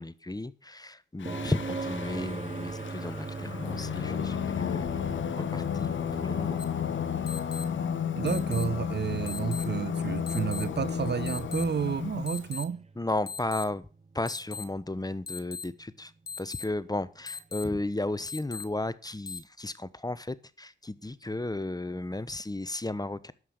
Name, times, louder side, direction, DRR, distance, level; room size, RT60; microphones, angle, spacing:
voice 1, 0.0-5.0 5.4-6.6 9.2-9.3 13.0-13.9 14.1-16.1 16.4-23.3, left 2 dB, 20° left, 1.0 m, -34 dB
Singing, 1.2-12.5, left 8 dB, 80° left, 1.0 m, -33 dB
sound 1, 1.3-15.1 17.3-17.4, right 3 dB, 35° right, 1.5 m, -42 dB
sound 2, 6.6-6.7 7.3-7.6 8.3-8.6 9.3-9.6 10.3-10.6 11.3-11.6 12.3-12.6 13.3-13.6 14.3-14.6 15.3-15.6 16.3-16.6 17.3-17.6 18.3-18.6 19.3-19.4, left 5 dB, 55° left, 1.1 m, -38 dB
voice 2, 8.1-12.9, right 7 dB, 60° right, 0.7 m, -31 dB
11.0 x 7.8 x 6.6 m
cardioid pair, 40°, 19 cm